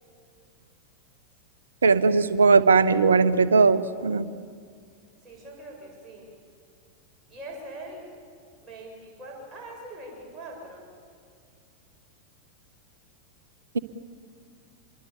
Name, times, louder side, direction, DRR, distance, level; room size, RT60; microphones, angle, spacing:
voice 1, 1.8-4.3, right 4 dB, 70° right, 15 dB, 0.9 m, -19 dB
voice 2, 5.2-6.3 7.3-8.0 8.6-10.9, right 1 dB, 20° right, -2 dB, 7.3 m, -42 dB
26.5 x 23.0 x 7.2 m, 2.1 s
figure-of-eight pair, 90°, 0 cm